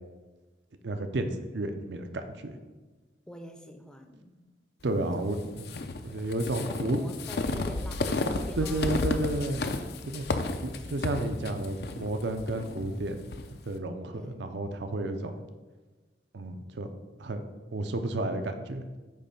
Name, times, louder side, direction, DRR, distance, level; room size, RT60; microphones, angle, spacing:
voice 1, 0.8-2.6 4.8-5.7 6.0-7.0 8.6-9.6 10.1-10.3 10.6-15.4 16.3-16.9 17.2-17.4 17.7-18.8, right 2 dB, 70° right, 8 dB, 0.6 m, -32 dB
voice 2, 3.3-4.3 5.0-5.5 6.5-9.1 10.4-11.3 14.1-14.4, equal, 5° left, 5 dB, 0.5 m, -46 dB
sound 1, 5.6-13.5, left 3 dB, 55° left, 0.5 m, -32 dB
8.5 x 3.2 x 5.3 m, 1.3 s
head